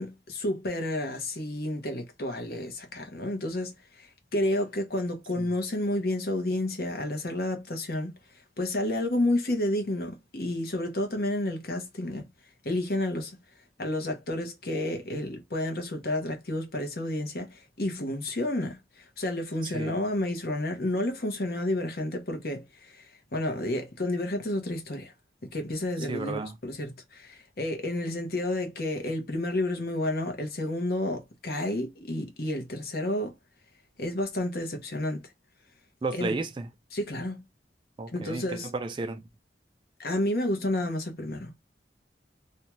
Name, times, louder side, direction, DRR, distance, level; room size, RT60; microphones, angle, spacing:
voice 1, 0.0-8.1 8.6-12.3 12.6-13.4 13.8-23.1 23.3-25.1 25.5-33.3 34.0-35.3 36.1-36.3 36.9-37.4 38.1-38.7 40.0-41.5, left 1 dB, 55° left, 0.8 m, -30 dB
voice 2, 19.6-20.0 26.0-26.5 36.0-36.7 38.0-39.2, right 3 dB, 25° right, 0.3 m, -33 dB
2.7 x 2.3 x 2.9 m
head